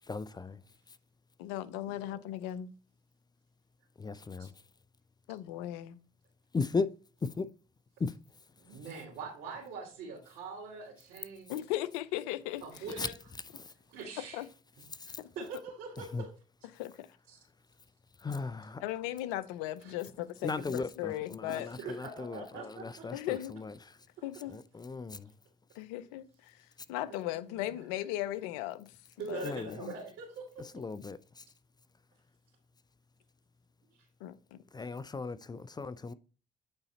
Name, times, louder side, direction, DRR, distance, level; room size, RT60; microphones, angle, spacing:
voice 1, 0.1-0.6 4.0-4.5 6.5-6.9 7.2-7.5 8.0-8.1 13.0-13.1 13.6-13.7 15.0-15.2 16.1-16.2 18.2-18.8 20.4-22.4 22.8-23.7 24.5-25.3 29.4-29.7 30.7-31.4 34.7-36.1, left 4 dB, 20° left, 0.5 m, -36 dB
voice 2, 1.4-2.7 5.3-6.0 11.5-12.6 14.3-14.4 15.2-15.3 16.7-17.1 18.8-21.7 23.1-23.6 24.2-24.6 25.8-26.5 26.9-28.9 29.3-29.9 34.2-34.6, left 14 dB, 80° left, 0.6 m, -37 dB
voice 3, 8.6-11.5 12.6-13.1 13.6-14.5 15.0-16.3 17.3-17.4 19.8-20.0 21.5-23.1 24.3-24.4 26.0-26.1 27.1-27.7 29.2-30.6 33.9-34.1, right 5 dB, 75° right, 2.9 m, -44 dB
8.8 x 4.1 x 4.1 m
hypercardioid pair, 60°, 18 cm